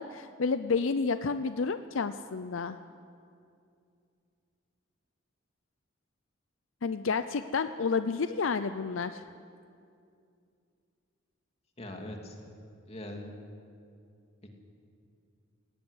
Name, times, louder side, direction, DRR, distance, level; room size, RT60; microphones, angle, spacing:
voice 1, 0.0-2.8 6.8-9.3, left 4 dB, 75° left, 11 dB, 0.6 m, -30 dB
voice 2, 11.8-12.5 12.8-13.3, left 1 dB, 30° left, 2 dB, 2.7 m, -41 dB
18.0 x 17.5 x 9.9 m, 2.4 s
head